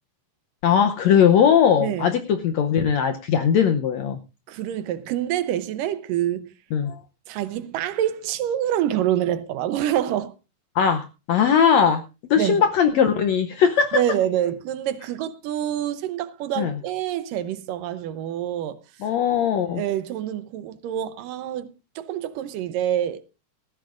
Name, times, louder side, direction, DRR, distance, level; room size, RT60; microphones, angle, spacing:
voice 1, 0.6-4.2 6.7-7.0 10.7-12.0 12.3-14.0 16.6-16.7 19.0-19.8, left 7 dB, 75° left, 1.6 m, -19 dB
voice 2, 1.8-2.2 4.5-6.5 7.3-10.3 12.4-12.6 13.9-19.1 19.7-23.2, right 11 dB, 75° right, 2.4 m, -26 dB
17.5 x 14.5 x 2.5 m
omnidirectional pair, 4.1 m